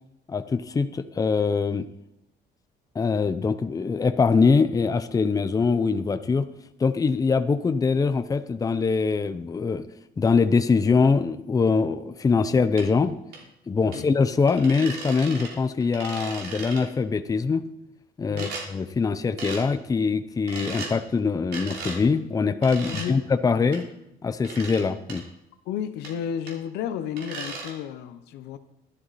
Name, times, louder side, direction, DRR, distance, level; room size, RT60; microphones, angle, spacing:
voice 1, 0.3-1.9 2.9-6.5 6.8-9.8 10.2-13.2 13.7-17.6 18.2-23.9 24.2-25.2, left 4 dB, 20° left, 11 dB, 0.6 m, -23 dB
sound 1, 12.8-12.9 13.3-13.4 13.9-14.0 14.5-15.5 15.8-16.9 18.4-18.7 19.4-19.6 20.5-20.9 21.5-22.0 22.6-23.1 23.7-23.8 24.4-24.8 25.1-25.2 26.0-26.1 26.5-26.6 27.2-27.7, right 4 dB, 80° right, 3.1 m, -36 dB
voice 2, 22.8-23.2 25.6-28.6, left 9 dB, 85° left, 11 dB, 0.9 m, -32 dB
12.0 x 11.0 x 4.2 m, 0.85 s
cardioid pair, 110°, 17 cm